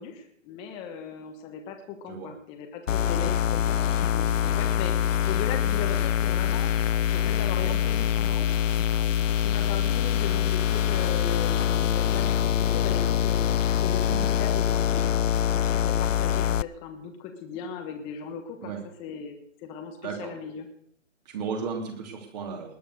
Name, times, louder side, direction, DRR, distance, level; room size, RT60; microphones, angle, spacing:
voice 1, 0.0-3.8 4.1-6.7 7.1-8.5 9.4-13.4 13.8-15.2 15.5-18.7 19.0-19.4 19.6-20.7, left 7 dB, 15° left, 5 dB, 1.3 m, -38 dB
sound 1, 2.9-16.6, left 9 dB, 70° left, 0.6 m, -24 dB
voice 2, 20.0-20.3 21.2-22.8, right 5 dB, 30° right, 3 dB, 3.0 m, -34 dB
19.5 x 9.2 x 6.5 m, 0.66 s
hypercardioid pair, 150°, 40 cm